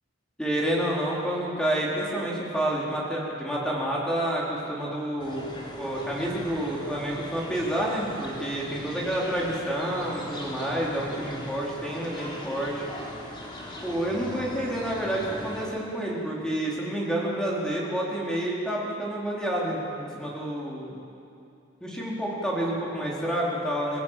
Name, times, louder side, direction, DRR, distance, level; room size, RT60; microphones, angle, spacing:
voice 1, 0.4-12.8 13.8-21.0 21.8-24.0, right 1 dB, 5° left, -5 dB, 4.5 m, -29 dB
sound 1, 5.2-15.7, left 1 dB, 25° left, 3.6 m, -40 dB
27.5 x 18.0 x 7.8 m, 2.6 s
head